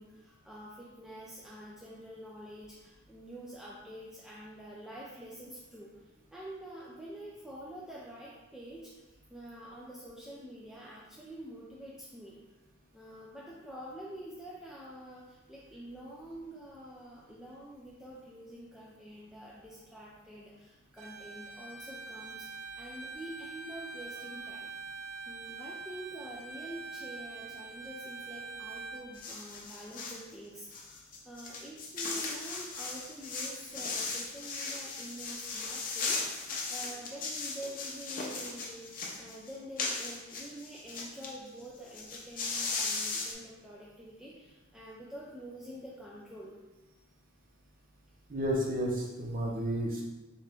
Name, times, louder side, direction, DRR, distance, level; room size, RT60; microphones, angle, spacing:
voice 1, 0.0-5.9 6.3-12.4 12.9-22.5 22.7-24.7 25.3-36.4 36.7-46.6, right 1 dB, 5° right, -6 dB, 0.3 m, -47 dB
Bowed string instrument, 21.0-29.1, right 4 dB, 80° right, 0.5 m, -44 dB
sound 1, 29.1-30.2 30.7-41.3 41.6-41.7 41.9-43.3, left 4 dB, 40° left, 0.6 m, -37 dB
voice 2, 48.3-50.0, equal, 40° right, -2 dB, 0.7 m, -31 dB
4.2 x 2.5 x 3.3 m, 1.1 s
head